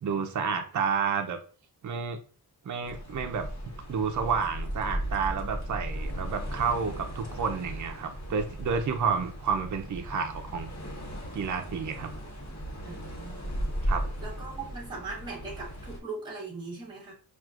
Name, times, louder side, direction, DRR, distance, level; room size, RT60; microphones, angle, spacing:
voice 1, 0.0-1.4 1.8-2.2 2.6-10.7 11.3-12.1 13.8-14.0, right 6 dB, 50° right, 6 dB, 0.5 m, -30 dB
sound 1, 2.8-16.0, equal, 45° left, 1.2 m, -36 dB
voice 2, 12.8-13.6 14.2-17.1, right 3 dB, 10° right, -2 dB, 0.9 m, -40 dB
5.9 x 2.5 x 2.4 m, 0.40 s
wide cardioid pair, 155°, 39 cm